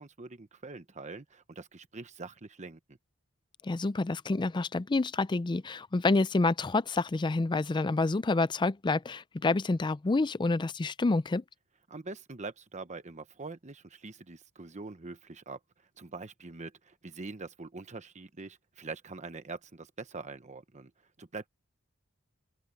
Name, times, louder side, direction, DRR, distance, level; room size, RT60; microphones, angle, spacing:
voice 1, 0.0-3.0 11.9-15.6 16.0-20.9 21.2-21.5, right 3 dB, 35° right, 1.0 m, -44 dB
voice 2, 3.6-11.4, left 3 dB, 20° left, 0.4 m, -28 dB
open air
head